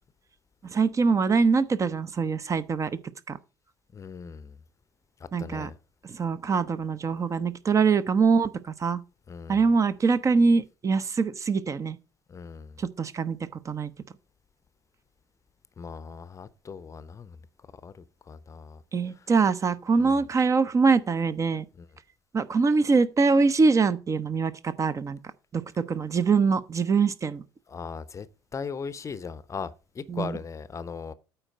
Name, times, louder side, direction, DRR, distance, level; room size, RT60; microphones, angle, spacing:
voice 1, 0.7-2.9 3.3-3.4 5.3-5.7 6.1-9.0 9.5-12.0 12.8-13.9 18.9-21.7 22.3-25.2 25.5-25.6 25.9-27.4 30.1-30.3, right 4 dB, 30° right, 0.7 m, -23 dB
voice 2, 3.9-4.6 5.2-5.8 9.3-9.6 12.3-12.8 15.8-17.4 17.8-18.8 19.1-19.3 20.0-20.2 21.8-21.9 27.7-28.3 28.5-31.1, left 5 dB, 30° left, 0.7 m, -38 dB
8.9 x 4.4 x 6.3 m
figure-of-eight pair, 60°, 11 cm